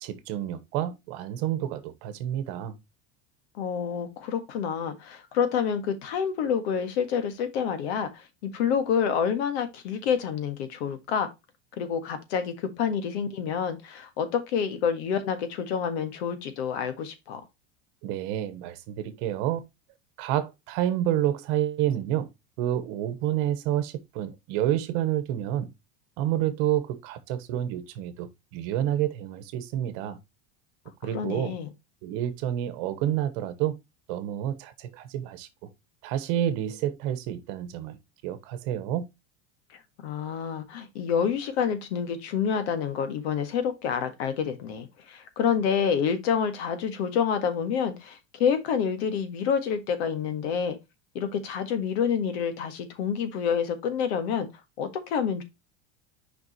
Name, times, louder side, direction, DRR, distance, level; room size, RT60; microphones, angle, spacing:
voice 1, 0.0-2.8 18.0-19.6 20.2-22.3 22.6-25.7 26.2-30.2 31.0-31.6 32.0-33.8 34.1-35.7 36.0-38.0 38.2-39.1, right 12 dB, 55° right, 1.2 m, -29 dB
voice 2, 3.6-11.3 11.8-17.4 31.1-31.7 40.0-50.8 51.1-54.5 54.8-55.4, left 7 dB, 75° left, 1.7 m, -28 dB
6.4 x 5.2 x 3.0 m
supercardioid pair, 145°, 33 cm